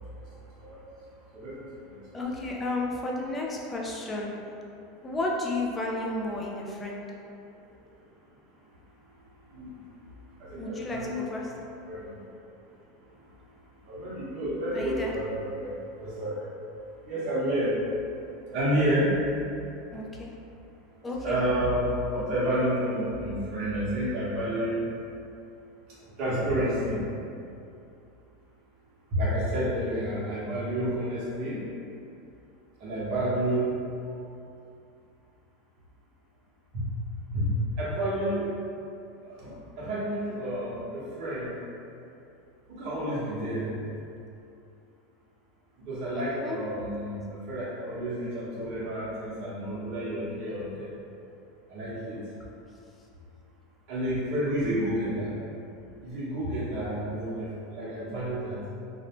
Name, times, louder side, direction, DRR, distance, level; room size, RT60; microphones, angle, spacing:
voice 1, 1.3-1.7 9.5-9.7 10.4-11.6 11.9-12.1 13.9-15.7 16.0-16.3 17.0-17.8 18.5-19.1 21.2-24.8 26.2-27.0 29.1-31.6 32.8-33.7 34.1-34.2 36.7-36.8 37.3-37.5 37.8-38.5 39.2-39.4 39.8-41.5 42.8-43.7 45.9-47.2 47.5-50.9 51.7-52.2 53.9-55.3 56.0-57.5 57.7-58.6, right 1 dB, 45° right, -10 dB, 0.9 m, -30 dB
voice 2, 2.1-4.3 5.0-7.0 10.6-11.4 14.7-15.1 19.9-20.3 21.0-21.4 46.1-46.6, left 2 dB, 15° left, -2 dB, 0.4 m, -32 dB
2.6 x 2.1 x 2.9 m, 2.6 s
supercardioid pair, 145°, 0 cm